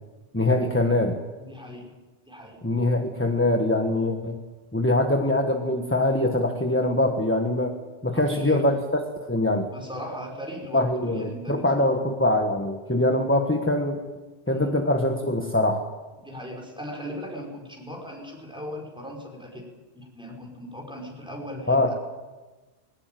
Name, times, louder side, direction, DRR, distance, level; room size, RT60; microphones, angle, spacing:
voice 1, 0.3-1.2 2.6-4.4 4.7-8.8 9.2-9.7 10.7-14.0 14.5-15.9 21.7-21.9, left 1 dB, 10° left, 4 dB, 1.5 m, -23 dB
voice 2, 1.4-1.9 2.3-2.6 8.1-8.6 9.7-11.9 14.5-14.7 16.2-19.7 20.0-21.9, equal, 5° right, 1 dB, 5.3 m, -38 dB
21.5 x 19.0 x 9.2 m, 1.2 s
omnidirectional pair, 1.1 m